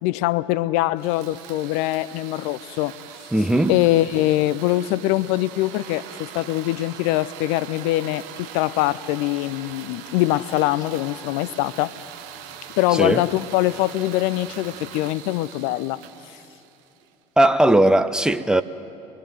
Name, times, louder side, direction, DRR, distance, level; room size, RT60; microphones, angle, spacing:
voice 1, 0.0-2.9 3.7-11.9 12.8-16.0, left 16 dB, 55° left, 0.5 m, -23 dB
sound 1, 1.0-17.1, right 9 dB, 55° right, 1.2 m, -41 dB
voice 2, 3.3-3.8 12.9-13.2 17.4-18.6, right 1 dB, 5° right, 0.7 m, -18 dB
25.0 x 21.5 x 7.7 m
figure-of-eight pair, 65°, 15 cm